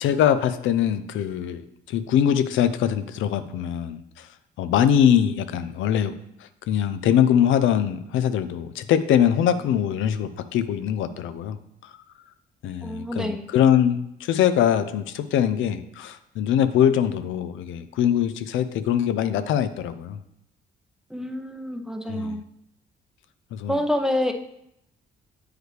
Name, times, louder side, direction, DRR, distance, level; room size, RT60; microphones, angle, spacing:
voice 1, 0.0-4.3 4.6-11.6 11.8-11.9 12.6-20.2 22.1-22.4 23.5-23.8, left 9 dB, 80° left, 11 dB, 0.5 m, -22 dB
voice 2, 12.8-13.5 21.1-22.4 23.7-24.3, left 1 dB, 5° right, 5 dB, 0.6 m, -27 dB
8.0 x 4.8 x 3.2 m, 0.78 s
cardioid pair, 90°, 20 cm